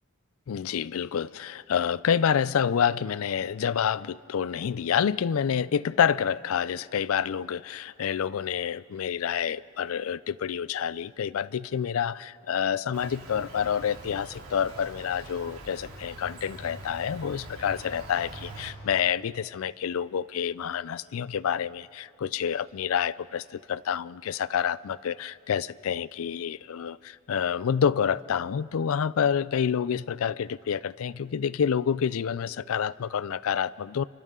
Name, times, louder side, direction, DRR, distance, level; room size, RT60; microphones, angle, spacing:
voice 1, 0.5-34.1, left 8 dB, 75° left, 0.4 m, -28 dB
Insect, 12.9-18.7, right 1 dB, 75° right, 3.9 m, -44 dB
29.5 x 24.5 x 3.8 m
head